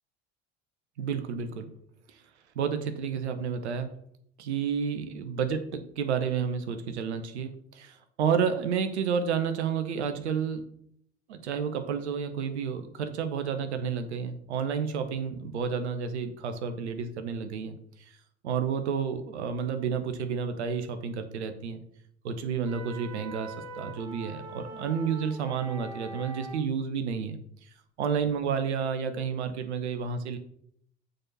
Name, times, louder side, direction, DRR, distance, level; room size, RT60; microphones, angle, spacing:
voice 1, 1.0-1.7 2.5-3.9 4.4-10.6 11.3-17.8 18.4-21.8 22.2-27.4 28.0-30.4, right 6 dB, 75° right, 9 dB, 1.0 m, -30 dB
sound 1, 22.7-26.6, right 2 dB, 45° right, 3.4 m, -43 dB
6.4 x 4.2 x 6.0 m, 0.70 s
figure-of-eight pair, 65°, 34 cm